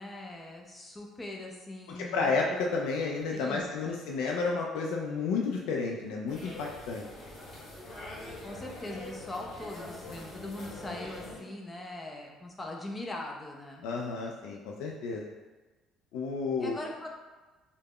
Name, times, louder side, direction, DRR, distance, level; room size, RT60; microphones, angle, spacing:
voice 1, 0.0-2.3 3.3-4.0 8.4-13.8 16.6-17.1, left 2 dB, 15° left, 0 dB, 0.4 m, -41 dB
voice 2, 2.0-7.1 13.8-15.3 16.1-16.8, left 4 dB, 90° left, -1 dB, 0.3 m, -31 dB
sound 1, 6.3-11.4, left 1 dB, 40° left, 1.1 m, -44 dB
2.3 x 2.0 x 3.5 m, 1.2 s
cardioid pair, 145°, 0 cm